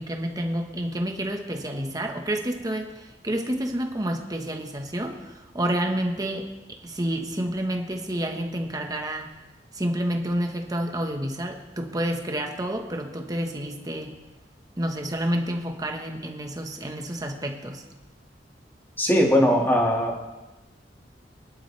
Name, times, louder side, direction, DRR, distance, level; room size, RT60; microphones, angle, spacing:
voice 1, 0.0-6.5 6.8-9.3 9.7-14.1 14.8-17.8, right 1 dB, 20° right, 3 dB, 1.4 m, -29 dB
voice 2, 19.0-20.2, equal, 15° left, -1 dB, 2.2 m, -20 dB
22.5 x 11.5 x 3.4 m, 1.1 s
head